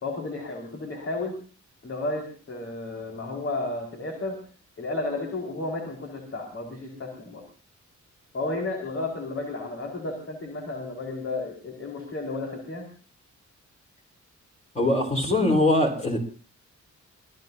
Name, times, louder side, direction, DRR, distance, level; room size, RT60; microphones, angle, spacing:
voice 1, 0.0-1.4 1.8-4.4 4.8-7.4 8.3-12.9, left 2 dB, 45° left, 1 dB, 4.9 m, -32 dB
voice 2, 14.7-16.2, left 2 dB, 25° left, 1 dB, 4.5 m, -22 dB
26.5 x 19.5 x 2.8 m, 0.38 s
wide cardioid pair, 165°, 30 cm